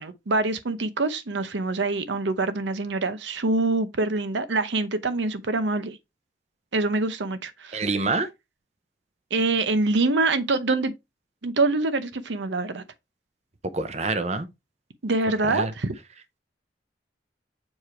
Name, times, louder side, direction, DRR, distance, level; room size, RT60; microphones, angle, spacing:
voice 1, 0.0-6.0 6.7-7.9 9.3-10.9 11.4-12.8 15.0-15.9, right 3 dB, 85° right, 0.8 m, -25 dB
voice 2, 7.7-8.3 13.7-14.5 15.4-15.7, right 3 dB, 40° right, 0.7 m, -26 dB
7.2 x 3.2 x 4.3 m
head